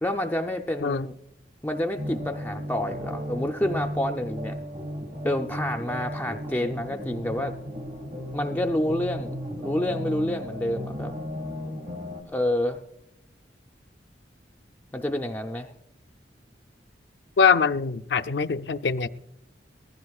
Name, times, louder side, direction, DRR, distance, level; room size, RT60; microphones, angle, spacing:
voice 1, 0.0-1.1 1.6-4.6 5.2-7.6 8.3-11.1 12.3-12.8 14.9-15.7, left 1 dB, 10° left, 0.5 m, -28 dB
sound 1, 2.0-12.2, equal, 45° right, 1.6 m, -35 dB
voice 2, 17.4-19.1, left 6 dB, 70° left, 0.5 m, -23 dB
21.5 x 15.5 x 2.4 m
head